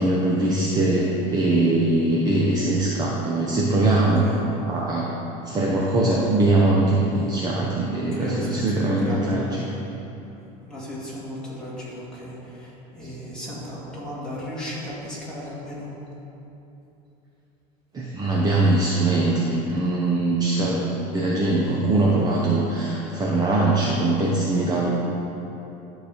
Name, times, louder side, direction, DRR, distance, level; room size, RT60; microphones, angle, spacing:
voice 1, 0.0-5.1 5.4-9.8 13.0-13.1 17.9-24.9, right 2 dB, 20° right, -4 dB, 0.8 m, -22 dB
voice 2, 7.9-9.3 10.2-10.4 10.7-16.0 24.5-24.7, equal, 5° left, -8 dB, 2.2 m, -35 dB
11.5 x 4.0 x 6.7 m, 3.0 s
cardioid pair, 160°, 18 cm